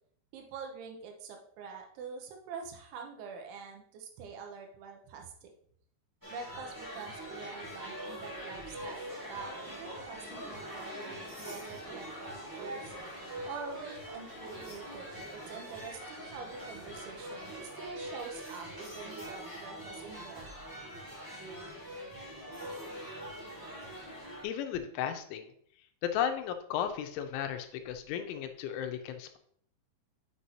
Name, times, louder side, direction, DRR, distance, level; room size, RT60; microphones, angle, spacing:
voice 1, 0.3-5.5 6.3-13.0 13.5-20.5, right 5 dB, 90° right, 3 dB, 3.3 m, -45 dB
sound 1, 6.2-24.4, equal, 20° right, 0.5 m, -43 dB
sound 2, 8.8-18.2, right 1 dB, 60° right, 0.9 m, -52 dB
voice 2, 24.4-25.5 26.0-29.4, left 9 dB, 85° left, 6 dB, 3.1 m, -34 dB
7.8 x 6.0 x 2.8 m, 0.63 s
omnidirectional pair, 5.4 m